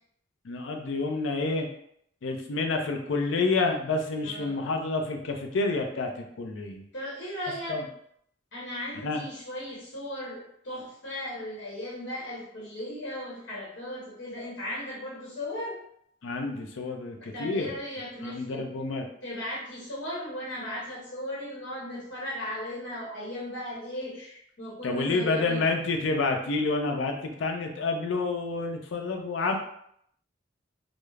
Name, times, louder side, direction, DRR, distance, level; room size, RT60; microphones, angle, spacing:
voice 1, 0.4-1.7 2.2-6.8 7.7-7.8 9.0-9.2 16.2-17.7 18.2-19.1 24.8-29.6, left 3 dB, 85° left, 4 dB, 0.4 m, -29 dB
voice 2, 4.2-4.6 6.9-7.8 8.5-15.8 17.2-18.7 19.2-25.7, left 1 dB, 70° left, -7 dB, 0.9 m, -37 dB
2.3 x 2.0 x 3.1 m, 0.70 s
head